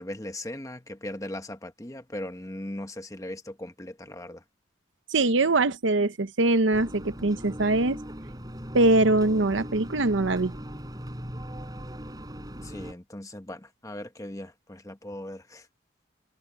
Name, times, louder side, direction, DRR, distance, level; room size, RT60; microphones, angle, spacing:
voice 1, 0.0-4.4 12.6-15.7, left 1 dB, 15° left, 1.1 m, -38 dB
voice 2, 5.1-8.0 8.7-10.5, right 2 dB, 75° right, 0.9 m, -22 dB
sound 1, 6.7-12.9, equal, 20° right, 5.4 m, -39 dB
open air
head